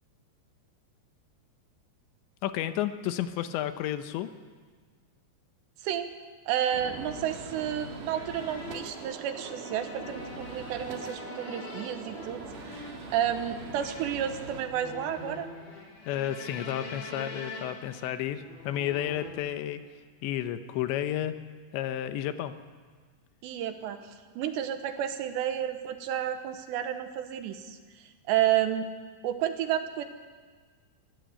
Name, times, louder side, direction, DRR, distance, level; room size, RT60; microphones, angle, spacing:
voice 1, 2.4-4.3 16.1-19.8 20.2-21.4 21.7-22.5, left 11 dB, 80° left, 10 dB, 3.2 m, -31 dB
voice 2, 6.5-15.5 23.4-28.9 29.2-30.0, right 10 dB, 75° right, 8 dB, 3.3 m, -31 dB
Gunshot gunfire, 6.7-14.6, right 4 dB, 55° right, 3.2 m, -42 dB
sound 1, 8.1-19.3, left 3 dB, 40° left, 3.6 m, -44 dB
23.5 x 15.5 x 8.1 m, 1.5 s
omnidirectional pair, 5.2 m